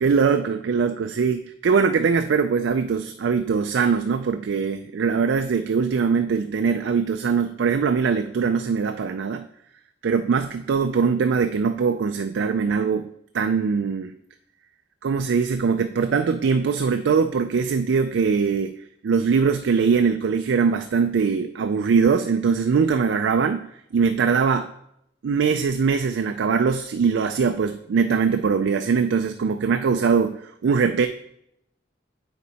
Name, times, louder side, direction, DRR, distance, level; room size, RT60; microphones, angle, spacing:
voice 1, 0.0-9.5 10.0-13.1 13.3-14.1 15.0-18.7 19.0-24.7 25.2-31.1, right 5 dB, 75° right, 7 dB, 0.4 m, -22 dB
8.4 x 4.5 x 4.0 m, 0.75 s
head